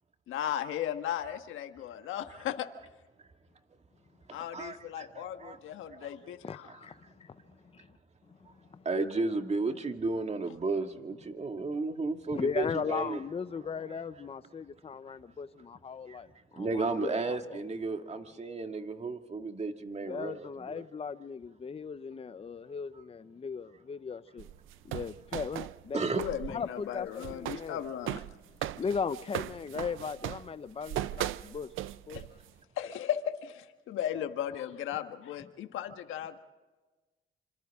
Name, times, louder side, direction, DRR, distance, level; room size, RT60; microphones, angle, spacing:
voice 1, 0.3-2.5 4.3-6.7 26.1-28.2 32.1-32.2 32.8-36.4, left 10 dB, 85° left, 1.5 m, -36 dB
voice 2, 4.5-5.6 5.9-6.1 8.8-13.2 16.1-16.2 16.6-20.8 25.9-26.2, right 3 dB, 35° right, 2.1 m, -33 dB
voice 3, 6.4-7.4 7.7-7.9 8.7-8.9 12.3-16.3 16.5-17.6 20.0-24.5 24.8-26.0 26.5-27.8 28.8-31.7 32.1-32.2, left 5 dB, 30° left, 0.7 m, -37 dB
sound 1, 24.4-26.5 26.8-32.5, right 14 dB, 85° right, 0.6 m, -38 dB
26.5 x 26.5 x 3.7 m
cardioid pair, 90°, 20 cm